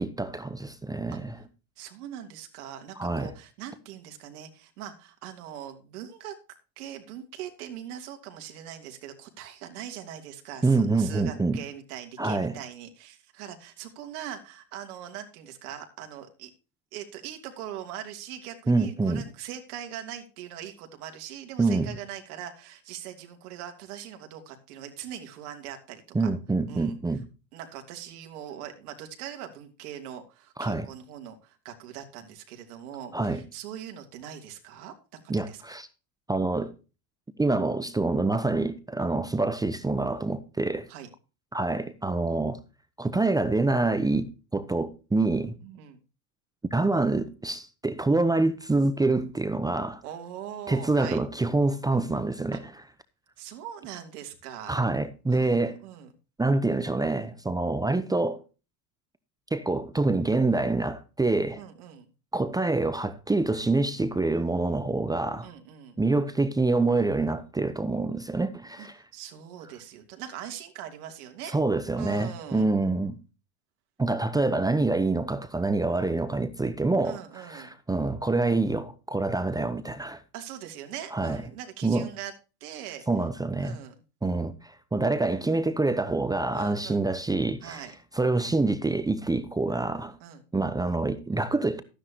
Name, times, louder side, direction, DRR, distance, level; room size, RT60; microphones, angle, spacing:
voice 1, 0.0-1.3 3.0-3.3 10.6-11.6 12.2-12.5 18.7-19.2 21.6-21.9 26.1-27.2 30.6-30.9 33.1-33.4 35.3-35.9 36.3-36.7 37.4-40.9 41.5-42.6 43.0-44.3 44.5-45.5 46.7-50.0 50.7-52.6 54.7-55.8 56.4-58.4 59.5-61.6 62.3-65.5 66.0-69.0 71.5-73.2 74.0-80.2 81.1-81.4 81.8-82.1 83.1-83.8 84.2-87.8 88.1-90.2 90.5-91.8, right 3 dB, 10° right, 0.8 m, -26 dB
voice 2, 1.8-6.3 6.8-16.5 16.9-26.0 26.7-27.0 27.5-35.2 35.5-35.8 40.9-41.1 45.6-46.0 50.0-51.2 52.5-52.6 53.4-54.9 55.3-56.1 61.6-62.1 65.4-66.0 68.8-71.6 71.9-72.7 77.0-77.8 80.3-82.3 82.6-83.0 83.6-84.0 86.5-87.1 87.6-87.9 90.2-90.4, right 10 dB, 80° right, 2.9 m, -41 dB
13.5 x 10.0 x 2.9 m
supercardioid pair, 125°, 44 cm